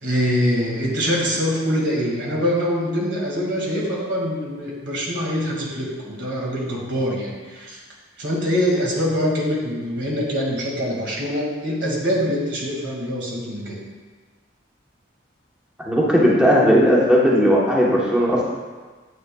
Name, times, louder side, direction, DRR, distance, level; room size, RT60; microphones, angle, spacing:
voice 1, 0.0-7.8 8.2-13.7, equal, 65° right, -2 dB, 2.0 m, -24 dB
voice 2, 15.8-18.5, equal, 5° right, -5 dB, 0.9 m, -17 dB
9.4 x 8.3 x 2.3 m, 1.4 s
head